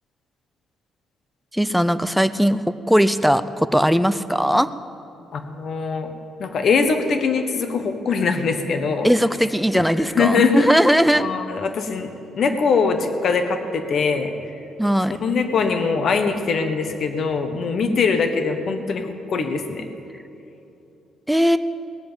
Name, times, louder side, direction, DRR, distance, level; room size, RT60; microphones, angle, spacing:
voice 1, 1.5-4.7 9.0-11.2 14.8-15.2 17.8-18.0 21.3-21.6, equal, ahead, 12 dB, 0.4 m, -19 dB
voice 2, 5.3-6.1 6.4-9.1 9.7-10.8 11.1-12.1 12.3-14.3 15.2-19.9, left 5 dB, 45° left, 7 dB, 1.1 m, -22 dB
19.5 x 7.4 x 8.8 m, 2.9 s
cardioid pair, 150°, 0 cm